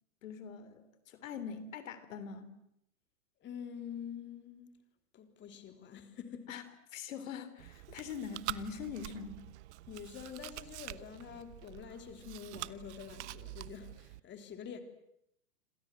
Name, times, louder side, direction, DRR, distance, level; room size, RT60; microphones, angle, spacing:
voice 1, 0.2-2.6 6.5-6.6 6.9-9.4, left 6 dB, 60° left, 3.3 m, -43 dB
voice 2, 3.4-4.8 5.1-6.5 7.9-8.0 9.9-14.8, left 8 dB, 25° left, 3.5 m, -47 dB
Chewing mastication, 7.6-14.2, right 17 dB, 50° right, 1.1 m, -46 dB
27.5 x 27.0 x 7.8 m
hypercardioid pair, 115°, 43 cm